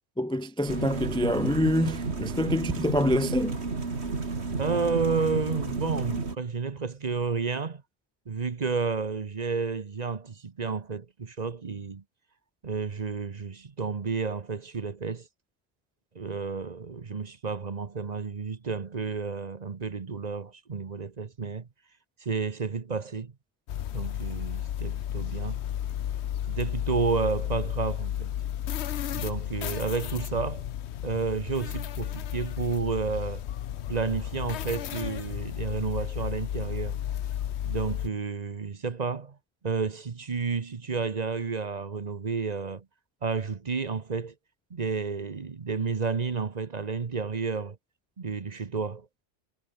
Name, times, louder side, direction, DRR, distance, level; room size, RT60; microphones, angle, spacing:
voice 1, 0.2-3.6, equal, 5° left, 0.5 m, -26 dB
sound 1, 0.7-6.4, right 3 dB, 80° right, 2.7 m, -32 dB
voice 2, 4.6-7.8 8.3-12.0 12.6-15.3 16.1-21.7 22.2-23.3 23.9-25.6 26.5-28.3 29.1-30.7 31.0-33.4 33.9-37.0 37.6-39.4 39.6-42.8 43.2-44.3 44.7-47.8 48.2-49.1, right 5 dB, 40° right, 1.0 m, -31 dB
sound 2, 23.7-38.1, left 11 dB, 85° left, 1.0 m, -33 dB
omnidirectional pair, 1.1 m